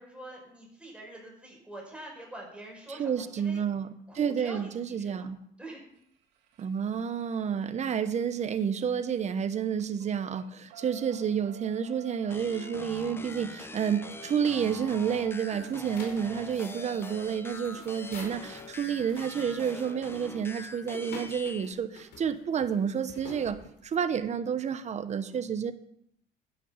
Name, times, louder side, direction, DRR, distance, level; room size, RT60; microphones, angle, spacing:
voice 1, 0.0-3.6 4.1-5.3 5.6-5.8 15.5-15.7 25.3-25.4, right 1 dB, 5° right, -2 dB, 5.4 m, -45 dB
voice 2, 2.9-3.9 4.1-5.4 6.6-23.6 23.8-25.7, right 7 dB, 45° right, 11 dB, 1.1 m, -30 dB
sound 1, 4.1-4.2 5.9-9.4 9.7-18.4 20.1-20.2 20.5-20.6 20.9-21.0, right 5 dB, 85° right, 2.5 m, -52 dB
sound 2, 12.3-21.7, left 2 dB, 15° left, 0.7 m, -44 dB
sound 3, 15.1-24.2, left 3 dB, 70° left, 4.4 m, -49 dB
11.5 x 9.6 x 5.8 m, 0.73 s
cardioid pair, 110°, 17 cm